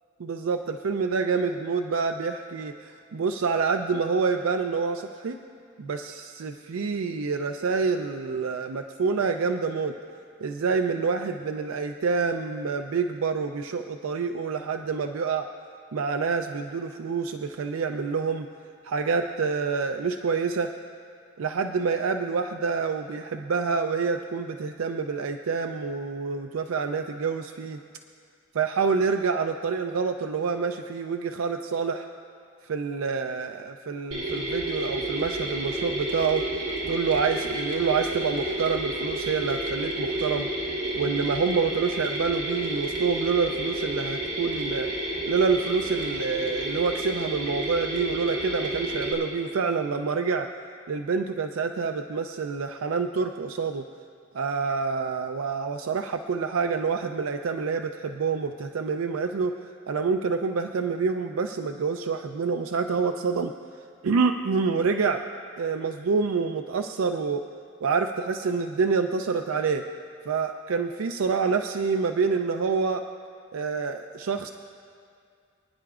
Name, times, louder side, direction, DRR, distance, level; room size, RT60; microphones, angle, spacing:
voice 1, 0.2-5.4 5.8-9.9 10.4-15.5 15.9-18.5 18.8-20.7 21.4-27.8 28.5-32.1 32.6-36.4 36.9-40.5 40.9-44.9 45.3-50.5 50.9-53.8 54.3-59.5 59.9-63.5 64.0-65.2 65.6-67.4 67.8-69.8 70.3-73.0 73.5-74.5, right 5 dB, 90° right, 6 dB, 0.4 m, -27 dB
Mechanisms, 34.1-49.1, right 1 dB, 60° right, 3.1 m, -30 dB
29.0 x 10.0 x 2.4 m, 2.3 s
head